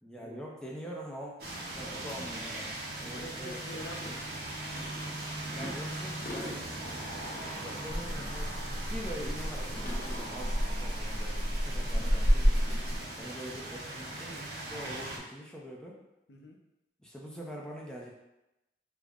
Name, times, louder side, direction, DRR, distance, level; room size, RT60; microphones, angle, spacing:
voice 1, 0.0-1.3 1.7-3.9 5.5-7.1 7.6-12.5 13.2-16.0 17.0-18.1, equal, 5° left, -3 dB, 0.5 m, -44 dB
sound 1, 1.4-15.2, right 1 dB, 60° right, 0.7 m, -40 dB
voice 2, 3.0-4.9 12.1-12.2 16.3-16.6, left 1 dB, 80° left, 0 dB, 0.6 m, -47 dB
sound 2, 3.4-10.7 11.0-13.3, left 1 dB, 50° left, 0.9 m, -47 dB
Rattle (instrument), 7.9-13.2, equal, 45° right, 1.1 m, -30 dB
3.7 x 2.0 x 3.5 m, 0.93 s
head